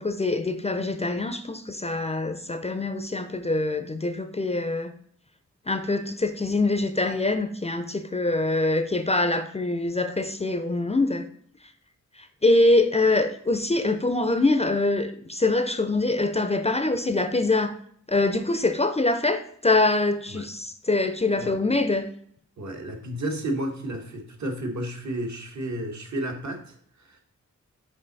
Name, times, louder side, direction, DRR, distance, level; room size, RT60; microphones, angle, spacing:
voice 1, 0.0-4.9 5.7-11.3 12.2-17.8 18.1-22.1, left 2 dB, 20° left, 9 dB, 0.4 m, -24 dB
voice 2, 22.6-27.2, right 1 dB, 70° right, 3 dB, 1.3 m, -32 dB
5.5 x 5.3 x 4.0 m, 0.63 s
wide cardioid pair, 150°, 30 cm